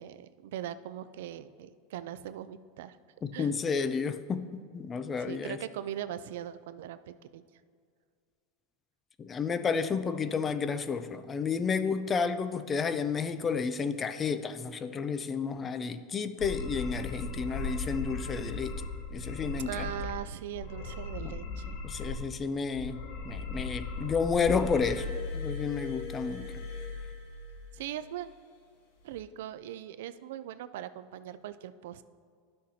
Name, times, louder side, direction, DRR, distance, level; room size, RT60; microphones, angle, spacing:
voice 1, 0.0-3.0 3.3-3.5 5.2-7.0 7.3-7.4 19.6-21.8 27.7-28.3 29.0-32.0, right 11 dB, 75° right, 13 dB, 0.3 m, -40 dB
voice 2, 3.2-5.6 9.2-18.7 19.1-19.8 21.8-23.0 23.2-25.1 25.3-26.5, left 5 dB, 20° left, 12 dB, 0.3 m, -31 dB
sound 1, 16.4-20.2 20.5-22.4 22.7-25.0, left 3 dB, 50° left, 1.0 m, -37 dB
Glass, 24.4-28.0 29.0-29.2, left 4 dB, 80° left, 1.3 m, -40 dB
11.5 x 6.4 x 2.8 m, 2.1 s
supercardioid pair, 145°, 0 cm